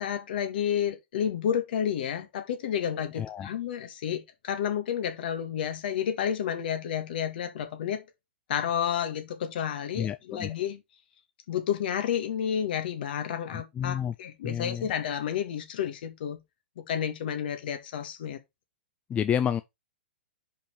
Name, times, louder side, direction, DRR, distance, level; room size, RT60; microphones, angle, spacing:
voice 1, 0.0-8.0 8.5-10.8 11.5-16.4 16.8-18.4, left 9 dB, 60° left, 1.8 m, -30 dB
voice 2, 3.2-3.5 9.9-10.5 13.5-14.1 14.4-14.9 19.1-19.6, left 9 dB, 20° left, 0.5 m, -30 dB
5.3 x 5.1 x 4.7 m
hypercardioid pair, 115°, 6 cm